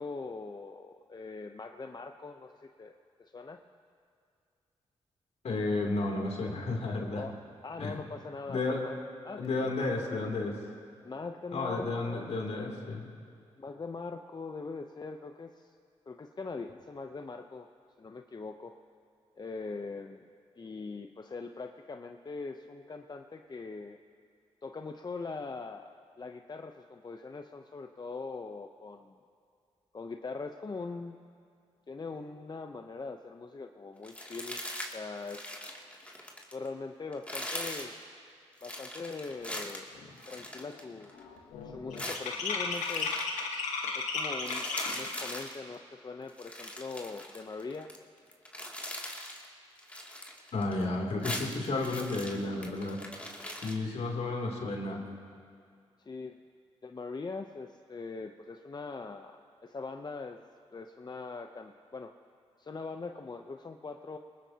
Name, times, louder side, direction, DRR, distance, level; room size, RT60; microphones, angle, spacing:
voice 1, 0.0-3.6 7.1-7.4 7.6-9.0 9.2-9.8 11.0-12.3 13.6-15.7 16.1-17.7 18.0-18.8 19.3-20.3 20.6-24.0 24.6-25.9 26.2-29.2 29.9-31.2 31.9-34.6 34.9-35.6 36.5-38.0 38.6-41.1 41.6-43.2 43.9-47.9 56.0-56.4 56.8-60.4 60.7-62.1 62.6-64.2, left 4 dB, 35° left, 5 dB, 0.7 m, -41 dB
voice 2, 5.4-7.2 7.8-8.0 8.5-8.8 9.4-10.5 11.5-13.0 50.5-53.0 53.6-55.0, left 2 dB, 65° left, 0 dB, 3.0 m, -32 dB
sound 1, 34.0-35.0 35.2-36.7 37.1-37.9 38.6-41.2 42.0-43.5 43.8-44.0 44.3-45.6 46.3-48.0 48.3-49.5 49.8-50.8 51.1-53.7, left 1 dB, 10° left, 2.6 m, -41 dB
sound 2, 39.5-39.6 39.9-40.3 40.6-45.2, left 4 dB, 90° left, 1.5 m, -34 dB
22.0 x 20.0 x 2.9 m, 2.3 s
supercardioid pair, 50°, 12 cm